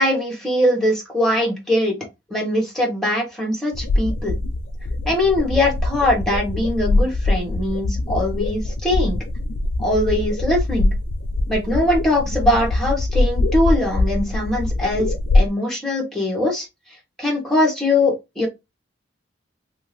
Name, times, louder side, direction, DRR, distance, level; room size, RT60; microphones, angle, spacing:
voice 1, 0.0-2.0 2.3-4.4 5.1-9.2 9.8-10.9 11.5-16.7 17.2-18.5, left 1 dB, ahead, 0 dB, 1.1 m, -21 dB
sound 1, 3.7-15.5, left 2 dB, 85° left, 0.4 m, -22 dB
2.7 x 2.4 x 3.2 m, 0.21 s
head